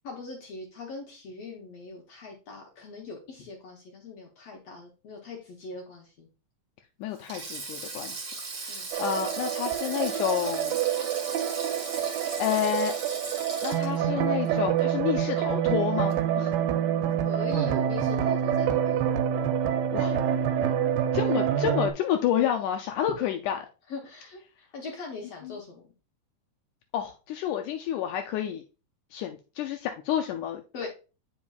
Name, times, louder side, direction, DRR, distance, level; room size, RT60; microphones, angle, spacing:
voice 1, 0.0-6.3 8.7-8.9 17.2-19.1 20.6-20.7 23.9-25.8 30.7-30.9, left 4 dB, 65° left, 0 dB, 1.7 m, -41 dB
voice 2, 7.0-8.3 8.6-10.8 11.9-12.1 12.4-12.9 13.6-16.5 19.9-20.2 21.1-23.6 26.9-28.6 29.1-30.9, left 10 dB, 80° left, 4 dB, 1.8 m, -29 dB
Sink (filling or washing), 7.1-15.6 15.9-16.1 17.3-17.5, right 3 dB, 45° right, 1.8 m, -38 dB
sound 1, 8.9-21.9, right 9 dB, 85° right, 2.3 m, -27 dB
8.6 x 5.1 x 2.3 m, 0.33 s
omnidirectional pair, 3.9 m